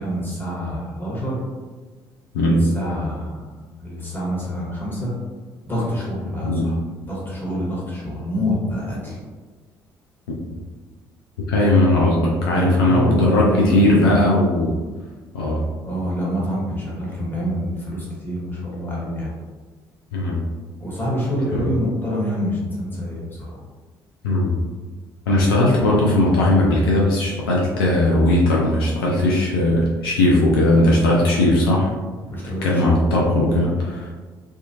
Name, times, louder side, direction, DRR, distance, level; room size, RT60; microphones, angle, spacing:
voice 1, 0.0-1.4 2.4-5.1 5.7-6.7 7.0-9.2 12.4-14.2 15.8-19.3 20.8-23.6 32.3-32.8, equal, 15° left, -5 dB, 1.2 m, -26 dB
voice 2, 11.5-14.7 15.3-15.6 20.1-20.4 21.5-21.6 24.2-24.5 25.3-31.9 32.6-34.1, left 1 dB, 80° left, -4 dB, 0.4 m, -18 dB
2.7 x 2.3 x 2.7 m, 1.3 s
figure-of-eight pair, 50°, 12 cm